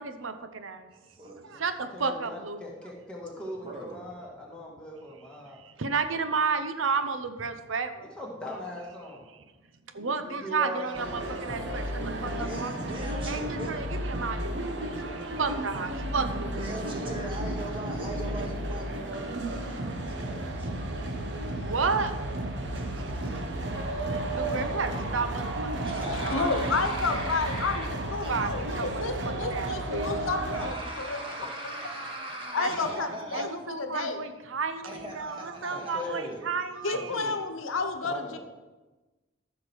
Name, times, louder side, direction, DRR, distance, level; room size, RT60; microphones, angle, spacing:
voice 1, 0.0-0.9 1.4-2.6 5.5-8.1 9.9-11.8 12.2-12.7 13.3-16.8 17.2-17.4 19.7-19.8 21.3-22.2 24.3-25.5 25.9-26.7 28.3-28.5 28.8-29.0 29.4-30.1 31.7-32.2 32.6-32.7 33.3-37.3, right 4 dB, 80° right, 9 dB, 0.8 m, -32 dB
voice 2, 0.9-1.5 3.6-4.0 12.3-13.7 16.5-21.4 22.7-23.6 25.8-27.9 28.2-28.3 29.6-29.7 30.5-33.5 34.8-36.3, right 1 dB, 25° right, -1 dB, 1.9 m, -40 dB
voice 3, 1.9-5.6 8.2-9.2 9.9-12.5 24.0-25.1 31.4-31.5 35.7-36.4 36.9-37.4 38.0-38.4, left 1 dB, 5° left, -4 dB, 2.1 m, -40 dB
sound 1, 10.9-30.7, right 1 dB, 60° right, 1.1 m, -33 dB
voice 4, 26.0-31.2 32.5-34.2 36.8-38.4, left 4 dB, 85° left, 7 dB, 1.0 m, -31 dB
14.5 x 6.0 x 4.6 m, 1.2 s
head